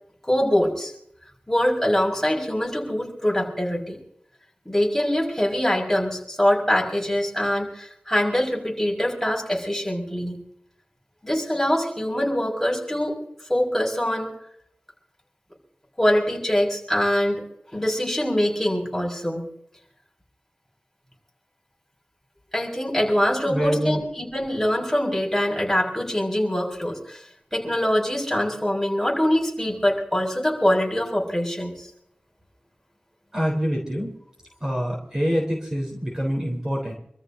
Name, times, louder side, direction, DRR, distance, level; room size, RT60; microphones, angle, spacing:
voice 1, 0.3-0.9 1.5-4.0 4.6-10.4 11.2-13.2 13.5-14.3 16.0-17.4 17.7-19.5 22.5-27.2 27.5-31.9, equal, 5° left, -1 dB, 6.1 m, -23 dB
voice 2, 23.4-24.0 33.3-34.1 34.6-36.9, equal, 20° right, -2 dB, 4.2 m, -25 dB
27.5 x 14.0 x 2.8 m, 0.73 s
wide cardioid pair, 75°, 3 cm